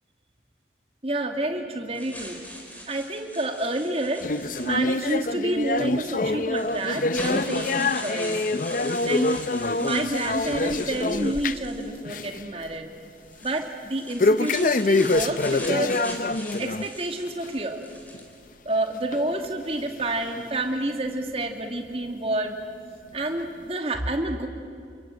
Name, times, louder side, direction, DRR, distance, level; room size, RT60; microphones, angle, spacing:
voice 1, 1.0-2.4 2.9-4.3 4.6-8.4 9.0-9.3 9.8-12.9 13.4-16.0 16.6-17.8 18.7-22.6 23.1-24.5, right 1 dB, 35° right, 4 dB, 2.4 m, -29 dB
sound 1, 1.9-5.1 6.0-6.1 6.5-12.3 13.2-18.4, equal, 10° left, 4.0 m, -41 dB
sound 2, 4.2-11.8 12.0-12.4 12.8-12.9 14.2-16.9 17.3-17.5 18.1-18.2 19.1-19.2 20.0-20.1, left 2 dB, 50° left, 0.6 m, -25 dB
28.0 x 23.0 x 9.1 m, 2.2 s
head